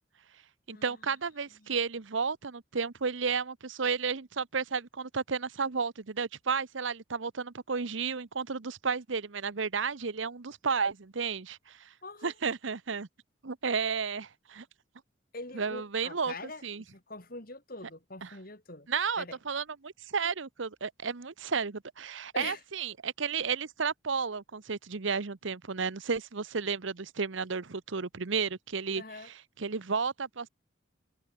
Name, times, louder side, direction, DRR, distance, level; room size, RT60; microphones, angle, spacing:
voice 1, 0.7-11.9 12.2-13.1 13.4-14.6 15.5-16.8 18.2-18.4 18.9-30.5, right 5 dB, 75° right, 0.9 m, -33 dB
voice 2, 12.0-12.3 15.3-16.6 16.9-18.9 19.2-19.4 22.3-22.6 29.0-29.3, left 3 dB, 45° left, 4.6 m, -43 dB
head